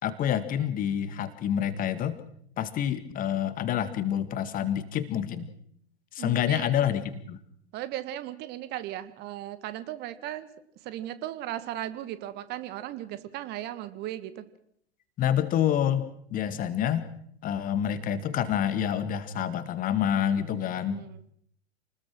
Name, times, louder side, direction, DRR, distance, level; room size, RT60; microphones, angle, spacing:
voice 1, 0.0-2.2 2.6-5.5 6.1-7.4 15.2-17.1 17.4-21.1, left 9 dB, 25° left, 13 dB, 1.9 m, -28 dB
voice 2, 6.2-6.7 7.7-10.5 10.8-14.5 20.9-21.2, right 13 dB, 30° right, 13 dB, 1.7 m, -36 dB
28.5 x 20.5 x 6.3 m, 0.68 s
figure-of-eight pair, 105°, 35 cm